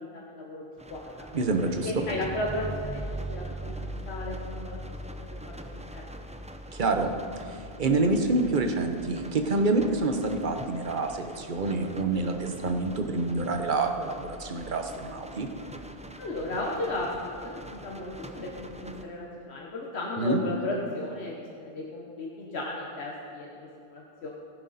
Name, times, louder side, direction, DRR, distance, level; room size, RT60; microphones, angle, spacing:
voice 1, 0.0-1.3 1.8-4.8 5.1-6.3 16.2-24.3, left 1 dB, 80° left, -2 dB, 1.4 m, -35 dB
sound 1, 0.8-19.0, right 1 dB, 10° right, 0.3 m, -42 dB
voice 2, 1.3-2.1 6.7-7.1 7.5-15.5 20.2-20.4, right 3 dB, 50° right, 5 dB, 1.0 m, -27 dB
15.5 x 10.5 x 4.2 m, 2.5 s
omnidirectional pair, 1.1 m